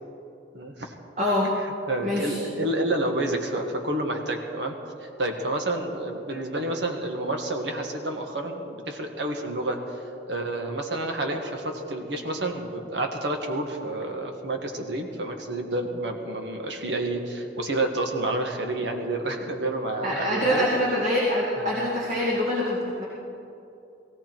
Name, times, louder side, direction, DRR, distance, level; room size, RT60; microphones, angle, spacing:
voice 1, 0.5-0.9 1.9-4.7 5.0-20.7 21.6-21.7, right 1 dB, 80° right, 3 dB, 1.7 m, -29 dB
voice 2, 1.2-1.5 2.0-2.4 20.0-23.0, equal, 40° right, -5 dB, 2.2 m, -25 dB
17.0 x 17.0 x 4.6 m, 2.7 s
head